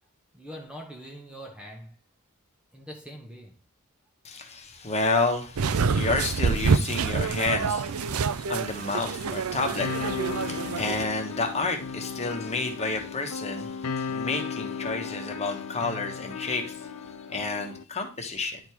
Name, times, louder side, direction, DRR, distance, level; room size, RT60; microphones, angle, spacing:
voice 1, 0.3-2.0 2.7-3.6, equal, 5° right, 0.9 m, -43 dB
voice 2, 4.2-18.6, left 3 dB, 30° left, 1.3 m, -30 dB
sound 1, 5.6-11.0, right 5 dB, 75° right, 0.5 m, -27 dB
sound 2, 9.8-17.8, left 5 dB, 85° left, 0.6 m, -35 dB
10.5 x 3.5 x 4.7 m
head